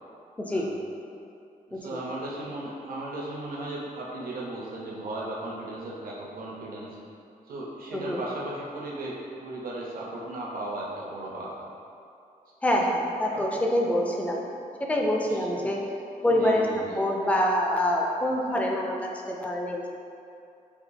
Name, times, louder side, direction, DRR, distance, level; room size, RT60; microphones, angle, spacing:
voice 1, 1.8-7.0 7.5-11.5 13.3-13.4 15.2-15.7 16.2-17.0, right 1 dB, 85° right, -4 dB, 0.7 m, -36 dB
voice 2, 7.9-8.2 12.6-14.4 14.9-15.8 16.2-18.9 19.3-19.9, left 1 dB, 10° left, -1 dB, 0.4 m, -25 dB
4.9 x 3.0 x 2.6 m, 2.6 s
wide cardioid pair, 175°, 14 cm